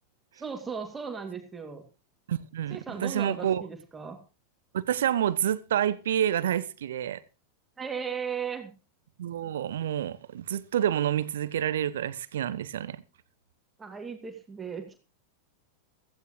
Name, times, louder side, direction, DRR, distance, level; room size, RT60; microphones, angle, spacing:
voice 1, 0.3-1.8 2.7-4.2 7.8-8.7 13.8-15.0, right 6 dB, 15° right, 2.3 m, -36 dB
voice 2, 2.3-3.6 4.7-7.2 9.2-13.0, right 10 dB, 60° right, 0.9 m, -28 dB
16.0 x 15.0 x 3.1 m
figure-of-eight pair, 90°, 0 cm